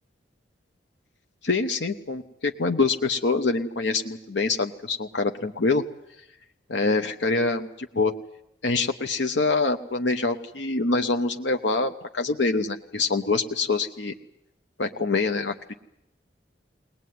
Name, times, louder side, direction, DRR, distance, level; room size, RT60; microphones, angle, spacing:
voice 1, 1.4-5.8 6.7-8.1 8.6-14.1 14.8-15.7, left 3 dB, 75° left, 6 dB, 1.0 m, -25 dB
21.5 x 19.5 x 9.4 m, 0.85 s
head